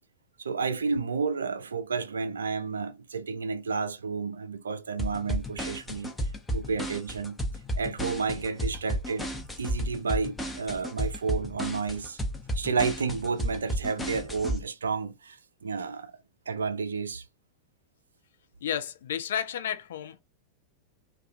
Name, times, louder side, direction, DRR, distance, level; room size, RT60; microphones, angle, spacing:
voice 1, 0.4-6.1 6.5-7.4 7.8-9.3 9.6-12.2 12.5-16.2 16.5-17.2, right 5 dB, 70° right, 0.4 m, -31 dB
sound 1, 5.0-14.6, equal, 10° left, 0.6 m, -32 dB
voice 2, 18.6-20.2, left 9 dB, 60° left, 0.3 m, -32 dB
2.3 x 2.2 x 2.5 m
figure-of-eight pair, 90°, 0 cm